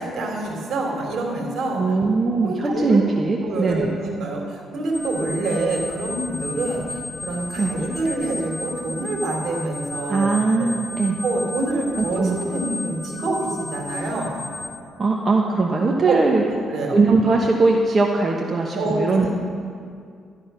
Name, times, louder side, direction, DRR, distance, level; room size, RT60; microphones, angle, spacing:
voice 1, 0.0-2.0 2.4-3.0 3.4-10.3 10.6-10.7 11.2-14.3 16.1-16.2 16.5-17.0 18.7-19.3, right 2 dB, 70° right, 0 dB, 3.3 m, -26 dB
voice 2, 1.8-4.0 7.6-7.7 10.1-11.2 12.0-12.4 15.0-16.5 16.9-19.3, right 3 dB, 35° right, 0 dB, 1.2 m, -20 dB
sound 1, 4.9-14.7, left 2 dB, ahead, 2.1 m, -34 dB
12.0 x 12.0 x 5.6 m, 2.3 s
cardioid pair, 90°, 0 cm